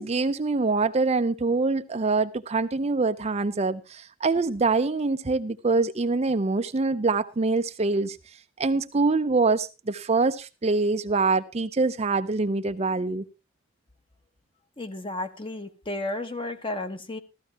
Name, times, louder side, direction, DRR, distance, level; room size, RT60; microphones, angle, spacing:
voice 1, 0.0-8.2 8.6-13.2, right 3 dB, 30° right, 0.5 m, -24 dB
voice 2, 14.8-17.2, left 2 dB, 25° left, 1.1 m, -33 dB
14.5 x 14.0 x 2.9 m
head